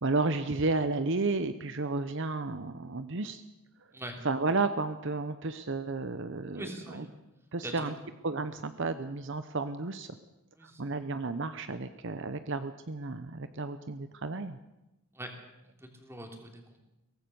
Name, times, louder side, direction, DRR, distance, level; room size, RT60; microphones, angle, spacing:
voice 1, 0.0-3.4 4.2-7.0 7.5-7.9 8.2-10.1 10.6-14.6, right 3 dB, 55° right, 11 dB, 0.9 m, -32 dB
voice 2, 6.6-7.2 7.6-7.9 10.5-10.9 15.1-15.3 15.6-16.8, right 1 dB, 10° right, 3 dB, 3.2 m, -43 dB
23.0 x 18.0 x 7.0 m, 0.97 s
head